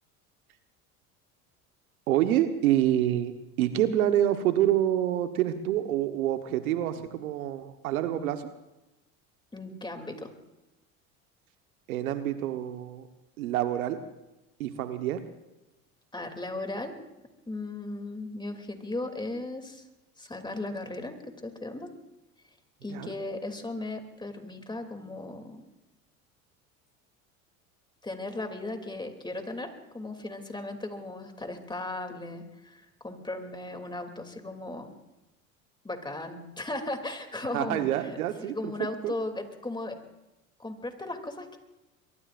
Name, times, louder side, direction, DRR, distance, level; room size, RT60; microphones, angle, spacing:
voice 1, 2.1-8.4 11.9-13.0 13.4-14.0 14.6-15.2 22.9-23.1 37.5-39.1, right 12 dB, 85° right, 8 dB, 1.3 m, -27 dB
voice 2, 9.5-10.3 16.1-17.0 17.5-19.9 20.2-21.9 22.8-25.6 28.0-34.9 35.8-40.0 40.6-41.6, left 2 dB, 10° left, 5 dB, 2.8 m, -37 dB
23.5 x 23.0 x 2.6 m, 0.99 s
hypercardioid pair, 80°, 42 cm